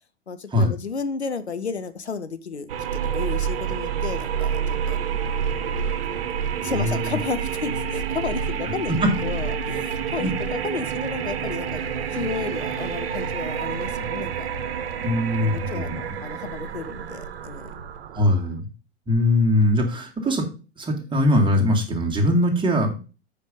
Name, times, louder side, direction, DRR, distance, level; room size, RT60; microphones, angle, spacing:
voice 1, 0.3-5.0 6.0-6.2 6.6-8.9 9.2-11.8 12.1-14.5 15.3-17.8, left 5 dB, 85° left, 11 dB, 0.8 m, -32 dB
sound 1, 2.7-18.6, right 7 dB, 60° right, 1.0 m, -28 dB
voice 2, 6.6-7.1 8.9-9.1 10.2-10.3 15.0-16.2 18.1-18.7 19.1-20.5 20.8-23.0, left 1 dB, 15° right, 0 dB, 2.2 m, -21 dB
7.6 x 5.2 x 5.2 m, 0.33 s
figure-of-eight pair, 90°, 33 cm